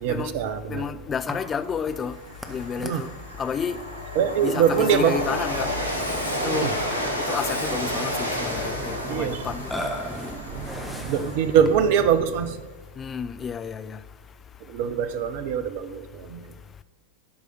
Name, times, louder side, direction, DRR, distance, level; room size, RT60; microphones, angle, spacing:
voice 1, 0.0-0.8 2.8-3.0 4.2-5.2 6.5-6.7 9.1-9.5 10.1-12.6 14.7-16.5, right 8 dB, 50° right, 0.6 m, -24 dB
voice 2, 0.7-2.2 2.5-3.1 3.4-3.8 4.4-5.7 6.4-6.7 7.2-9.7 13.0-14.0, left 6 dB, 20° left, 0.5 m, -30 dB
Burping eructation, 1.3-12.0, left 1 dB, 5° left, 1.0 m, -39 dB
Train, 1.9-12.3, left 1 dB, 85° left, 1.4 m, -31 dB
12.0 x 4.9 x 6.6 m
figure-of-eight pair, 90°, 0 cm